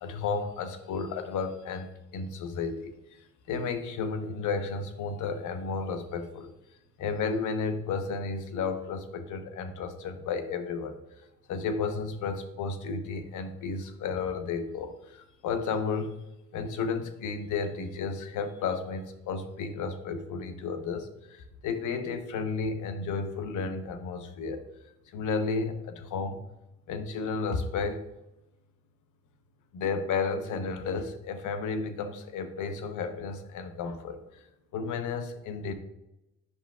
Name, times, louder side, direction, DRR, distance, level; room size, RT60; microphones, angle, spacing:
voice 1, 0.0-6.5 7.0-11.0 11.5-16.1 16.5-24.6 25.1-26.4 26.9-28.0 29.7-34.5 34.7-35.7, left 4 dB, 80° left, 8 dB, 0.8 m, -33 dB
8.1 x 5.7 x 2.3 m, 0.90 s
cardioid pair, 90°, 30 cm